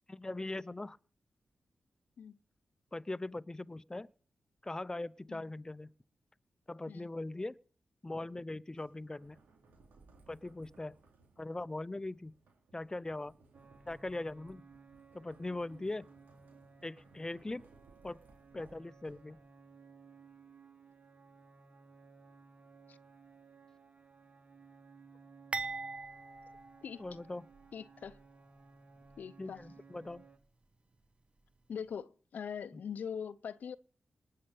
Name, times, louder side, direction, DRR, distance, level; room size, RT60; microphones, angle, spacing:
voice 1, 0.1-1.0 2.9-4.1 4.6-5.9 6.7-7.6 8.0-9.4 10.3-10.9 11.4-12.3 12.7-13.3 13.9-14.7 15.1-16.1 16.8-17.6 18.0-18.2 18.5-19.4 27.0-27.5 29.4-30.2, left 2 dB, 25° left, 0.7 m, -40 dB
sound 1, 8.7-19.7, right 3 dB, 85° right, 4.0 m, -63 dB
sound 2, 13.5-30.4, right 4 dB, 55° right, 5.7 m, -59 dB
sound 3, 25.5-27.7 28.0-28.2 29.1-29.2, right 3 dB, 40° right, 1.1 m, -42 dB
voice 2, 27.7-28.2 29.2-29.6 31.7-33.8, left 7 dB, 75° left, 0.6 m, -42 dB
19.0 x 6.7 x 8.5 m
supercardioid pair, 40°, 3 cm